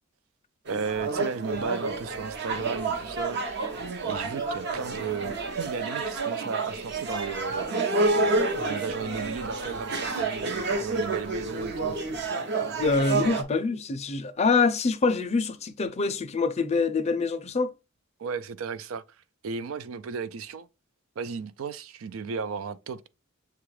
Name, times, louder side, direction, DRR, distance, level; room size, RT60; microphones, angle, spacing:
sound 1, 0.7-13.4, right 3 dB, 55° right, 0.8 m, -29 dB
voice 1, 0.7-3.4 4.1-7.9 8.6-12.0 18.2-19.0 19.4-20.7 21.2-23.1, right 5 dB, 85° right, 0.4 m, -34 dB
voice 2, 12.7-17.7, left 4 dB, 30° left, 0.4 m, -25 dB
6.7 x 2.4 x 3.1 m
head